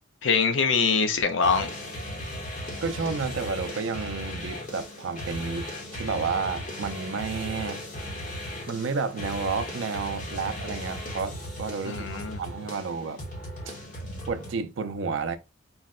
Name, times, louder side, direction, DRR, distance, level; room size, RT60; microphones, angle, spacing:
voice 1, 0.2-1.7 11.9-12.4, left 5 dB, 70° left, 0.5 m, -23 dB
sound 1, 1.4-14.5, left 1 dB, 40° left, 0.9 m, -37 dB
voice 2, 2.8-5.7 5.9-7.8 8.7-12.1 12.4-13.2 14.3-15.4, right 5 dB, 70° right, 0.4 m, -31 dB
3.9 x 2.1 x 2.3 m
head